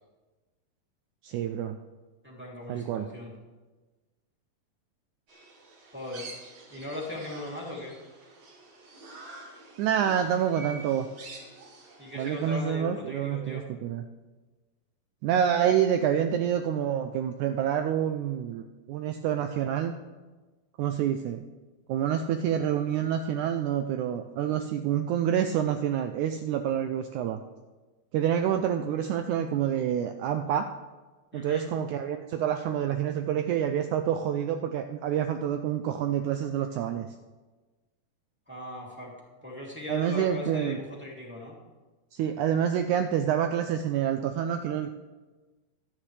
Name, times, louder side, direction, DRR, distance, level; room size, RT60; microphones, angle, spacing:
voice 1, 1.2-1.8 2.7-3.1 9.8-11.1 12.2-14.0 15.2-20.0 20.8-21.4 21.9-27.4 28.1-30.7 31.3-37.1 39.9-40.8 42.1-44.9, right 9 dB, 90° right, 7 dB, 1.7 m, -27 dB
voice 2, 2.2-3.3 5.9-6.3 6.7-7.9 12.0-13.6 31.3-31.6 38.5-39.1 39.4-41.5, left 1 dB, 5° right, -4 dB, 2.2 m, -38 dB
sound 1, 5.3-12.5, right 3 dB, 50° right, 3.0 m, -47 dB
24.0 x 9.4 x 3.3 m, 1.2 s
omnidirectional pair, 4.1 m